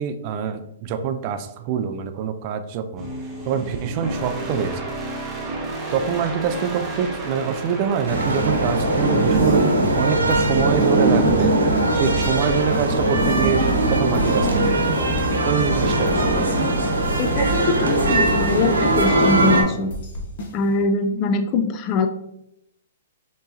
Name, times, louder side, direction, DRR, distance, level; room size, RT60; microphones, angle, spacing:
voice 1, 0.0-3.1 3.5-4.9 5.9-9.6 10.0-11.5 11.9-16.5, right 7 dB, 40° right, 9 dB, 0.4 m, -25 dB
sound 1, 3.0-13.3, right 1 dB, 20° right, 0.8 m, -33 dB
sound 2, 8.1-19.6, right 2 dB, 85° right, 0.9 m, -20 dB
sound 3, 9.3-20.9, left 1 dB, 55° left, 0.9 m, -35 dB
voice 2, 17.2-19.9 20.5-22.1, left 3 dB, 35° left, 8 dB, 0.4 m, -22 dB
4.5 x 3.0 x 2.6 m, 0.81 s
hypercardioid pair, 130°, 0 cm